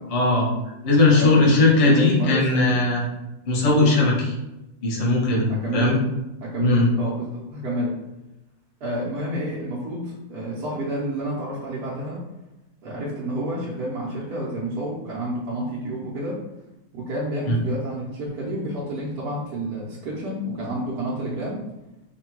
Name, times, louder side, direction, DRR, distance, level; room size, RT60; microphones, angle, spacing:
voice 1, 0.1-0.5 0.8-3.1 3.5-4.3 4.8-6.0 6.6-6.9 17.5-17.6, left 2 dB, 60° left, -3 dB, 0.3 m, -19 dB
voice 2, 1.0-2.6 5.5-6.0 6.4-7.9 8.8-12.2 12.8-16.4 16.9-21.6, right 1 dB, 65° right, -7 dB, 1.3 m, -29 dB
3.6 x 2.3 x 4.4 m, 0.95 s
omnidirectional pair, 1.9 m